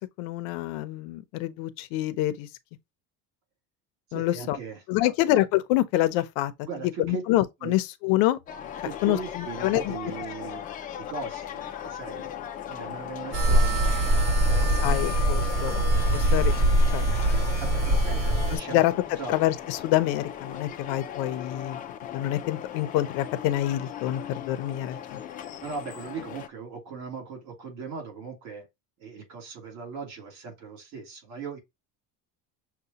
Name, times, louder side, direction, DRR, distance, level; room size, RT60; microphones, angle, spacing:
voice 1, 0.0-2.5 4.1-4.6 4.9-6.5 7.0-8.4 9.0-10.0 14.8-15.8 16.1-16.5 16.9-17.1 18.7-18.9 19.3-21.8 22.1-24.2 24.5-25.2, left 14 dB, 70° left, 0.7 m, -26 dB
voice 2, 4.1-5.1 6.7-7.2 7.6-7.8 8.8-10.6 11.1-12.3 12.7-15.0 17.6-19.3 25.6-28.7 29.0-31.6, right 5 dB, 60° right, 2.7 m, -39 dB
sound 1, 8.5-26.5, left 10 dB, 25° left, 0.3 m, -38 dB
sound 2, 13.3-18.6, right 1 dB, 35° right, 2.1 m, -22 dB
6.6 x 2.3 x 2.8 m
cardioid pair, 175°, 39 cm